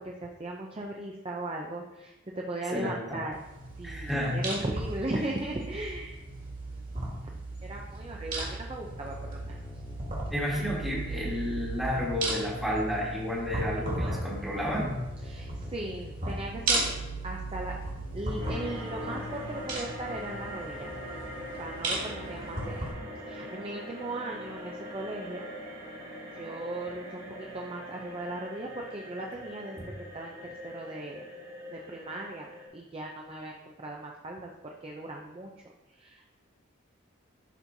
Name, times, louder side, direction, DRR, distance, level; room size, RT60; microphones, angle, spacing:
voice 1, 0.0-3.3 3.8-6.2 7.6-9.6 15.2-16.9 17.2-17.7 18.1-21.0 21.6-22.9 23.2-25.5 26.3-29.8 30.1-30.4 30.6-31.3 31.7-35.5 35.9-36.3, right 2 dB, 25° right, 0 dB, 0.5 m, -37 dB
voice 2, 2.7-3.3 3.8-4.4 10.3-15.0, left 1 dB, ahead, -6 dB, 1.4 m, -31 dB
sound 1, 3.3-22.9, right 2 dB, 45° right, 2.0 m, -36 dB
sound 2, 8.8-20.8, right 2 dB, 35° left, 0.6 m, -42 dB
sound 3, 18.4-32.7, equal, 60° right, 2.2 m, -42 dB
11.5 x 4.3 x 2.7 m, 1.1 s
head